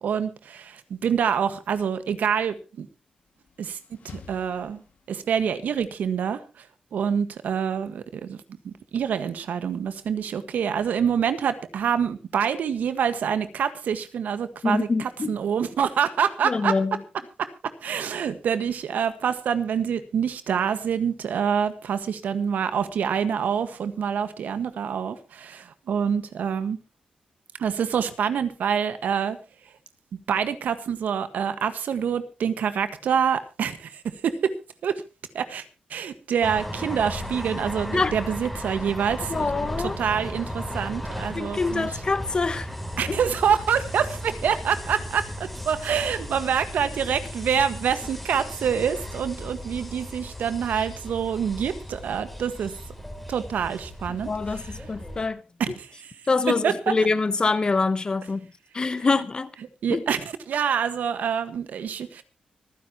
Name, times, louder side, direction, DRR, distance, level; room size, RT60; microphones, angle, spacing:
voice 1, 0.0-2.9 3.6-4.8 5.1-8.4 8.6-16.8 17.4-17.5 17.8-26.8 27.6-29.4 30.1-34.5 34.8-35.0 35.3-35.6 35.9-39.5 39.8-42.0 43.0-52.8 53.3-54.8 55.6-56.1 56.5-56.9 59.8-60.2 60.5-62.2, right 7 dB, 80° right, 1.6 m, -26 dB
sound 1, 3.1-5.5, left 6 dB, 65° left, 1.7 m, -49 dB
voice 2, 14.6-15.3 16.4-17.0 37.9-38.1 39.3-39.9 41.3-42.7 43.1-43.2 54.3-55.4 56.3-58.5 58.7-59.5 59.9-60.0, left 4 dB, 30° left, 1.0 m, -25 dB
sound 2, 36.4-55.3, equal, 5° left, 3.3 m, -36 dB
25.0 x 10.0 x 3.0 m
wide cardioid pair, 115°, 3 cm